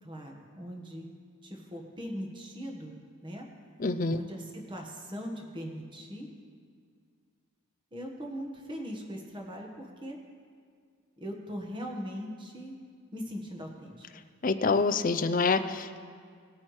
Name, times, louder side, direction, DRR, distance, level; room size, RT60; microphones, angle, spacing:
voice 1, 0.0-1.1 1.4-2.9 3.2-3.5 4.1-6.3 7.9-10.2 11.2-12.8 13.1-14.1, equal, 20° right, 1 dB, 1.3 m, -40 dB
voice 2, 3.8-4.2 14.4-16.0, left 4 dB, 35° left, 10 dB, 0.5 m, -26 dB
19.0 x 8.6 x 3.2 m, 2.1 s
head